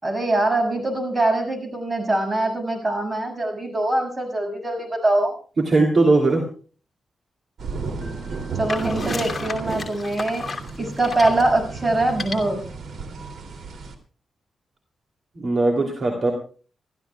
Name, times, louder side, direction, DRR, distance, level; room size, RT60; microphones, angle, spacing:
voice 1, 0.0-5.3 8.6-10.5 10.8-12.6, right 2 dB, 25° right, 4 dB, 6.5 m, -23 dB
voice 2, 5.6-6.5 15.4-16.3, right 2 dB, 45° right, 2 dB, 2.9 m, -19 dB
sound 1, 7.6-13.9, right 4 dB, 75° right, 2.7 m, -33 dB
sound 2, 8.7-11.5 12.1-12.4, left 4 dB, 30° left, 2.7 m, -32 dB
28.0 x 13.5 x 2.3 m, 0.38 s
cardioid pair, 95°, 0 cm